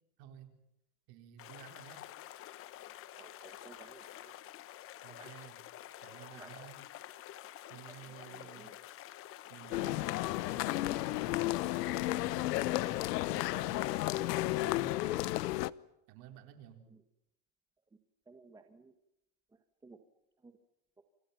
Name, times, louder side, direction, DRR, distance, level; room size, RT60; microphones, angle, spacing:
voice 1, 0.2-0.5 1.1-2.1 5.0-5.6 6.0-6.8 7.7-8.7 9.5-15.4 16.1-16.8, right 9 dB, 50° right, 6 dB, 4.2 m, -53 dB
sound 1, 1.4-14.9, left 13 dB, 30° left, 1.0 m, -49 dB
voice 2, 3.1-4.3 5.1-5.3 6.1-6.7 7.6-8.8 16.9-17.0 18.3-18.9 19.8-20.0 20.4-20.5, right 4 dB, 10° right, 6 dB, 1.4 m, -57 dB
sound 2, 9.7-15.7, left 17 dB, 85° left, 1.0 m, -33 dB
28.5 x 28.0 x 5.7 m, 0.85 s
supercardioid pair, 155°, 47 cm